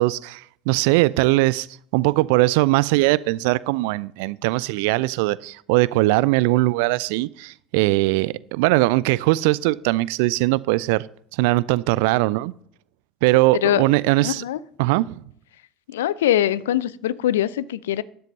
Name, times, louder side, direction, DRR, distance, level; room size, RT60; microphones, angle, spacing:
voice 1, 0.0-1.7 1.9-11.0 11.3-12.5 13.2-14.4 14.8-15.2, right 20 dB, 60° right, 0.3 m, -20 dB
voice 2, 14.2-14.6 15.9-18.0, left 12 dB, 70° left, 0.4 m, -22 dB
12.5 x 10.5 x 2.7 m
figure-of-eight pair, 65°, 0 cm